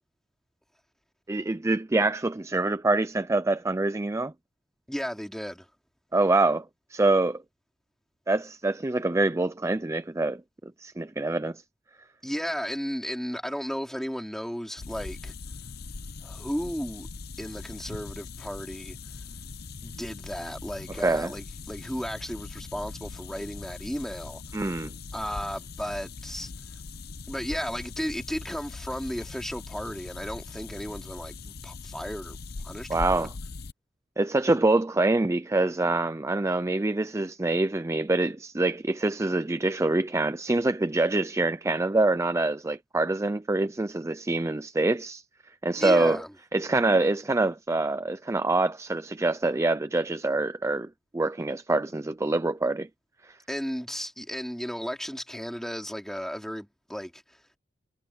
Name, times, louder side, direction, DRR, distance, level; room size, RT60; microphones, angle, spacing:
voice 1, 1.3-4.3 6.1-6.6 6.9-7.4 8.3-11.6 21.0-21.3 24.5-24.9 32.9-33.3 34.2-45.2 45.6-46.2 46.5-52.9 53.3-53.4, right 2 dB, 15° right, 0.4 m, -25 dB
voice 2, 4.9-5.7 12.2-15.3 16.2-17.1 17.4-19.0 19.8-24.7 25.1-26.5 27.3-32.4 32.6-33.3 45.8-46.3 53.5-57.4, equal, ahead, 3.6 m, -34 dB
sound 1, 14.8-33.7, left 4 dB, 55° left, 0.8 m, -41 dB
head